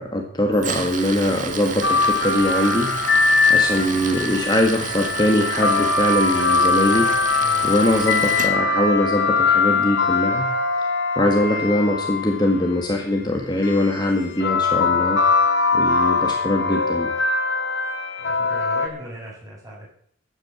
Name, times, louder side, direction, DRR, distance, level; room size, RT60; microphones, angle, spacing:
voice 1, 0.0-2.9 3.5-7.1 7.6-10.5 11.2-15.2 15.7-17.1, left 1 dB, 25° left, 1 dB, 1.8 m, -22 dB
Tools, 0.5-8.5, right 6 dB, 45° right, 1.7 m, -31 dB
sound 1, 1.8-12.7 13.6-18.9, left 4 dB, 70° left, 1.8 m, -21 dB
voice 2, 7.4-7.8 18.2-19.9, right 1 dB, 20° right, -4 dB, 6.6 m, -38 dB
14.5 x 9.2 x 7.2 m, 0.63 s
head